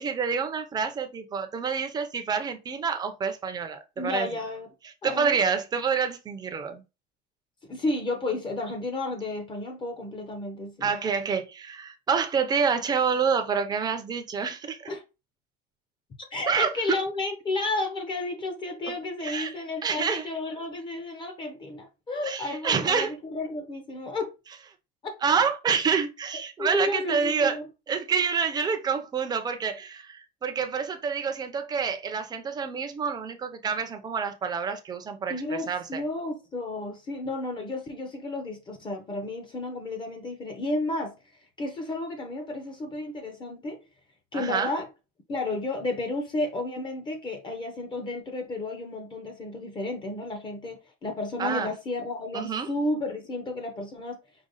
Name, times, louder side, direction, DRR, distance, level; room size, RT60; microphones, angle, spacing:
voice 1, 0.0-4.3 5.0-6.8 10.8-14.9 16.5-17.0 19.2-19.5 19.8-20.3 22.2-23.1 25.2-27.6 27.9-36.0 44.3-44.7 51.4-51.7 52.3-52.7, right 6 dB, 20° right, 0.7 m, -27 dB
voice 2, 4.0-4.7 5.0-5.3 7.7-11.0 14.9-15.0 16.3-24.3 25.0-25.1 26.6-27.7 35.3-41.2 41.6-43.8 44.3-44.9 45.3-54.2, left 2 dB, 25° left, 0.8 m, -32 dB
5.1 x 2.3 x 3.9 m
cardioid pair, 155°, 21 cm